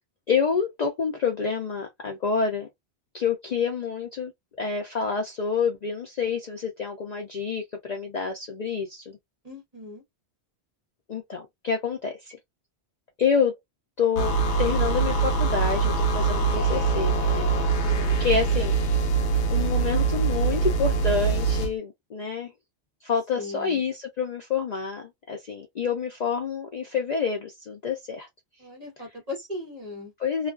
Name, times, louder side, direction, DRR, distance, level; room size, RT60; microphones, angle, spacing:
voice 1, 0.3-2.7 3.1-4.3 4.6-9.2 11.1-12.4 13.2-13.5 14.0-14.3 14.6-17.5 17.9-18.7 19.5-22.5 23.0-28.3 30.2-30.5, left 6 dB, 55° left, 0.5 m, -28 dB
voice 2, 9.4-10.0 17.7-18.6 23.3-23.8 28.6-30.1, left 2 dB, 35° right, 1.1 m, -38 dB
sound 1, 14.2-21.7, right 4 dB, 80° left, 0.9 m, -23 dB
2.4 x 2.2 x 2.3 m
omnidirectional pair, 1.1 m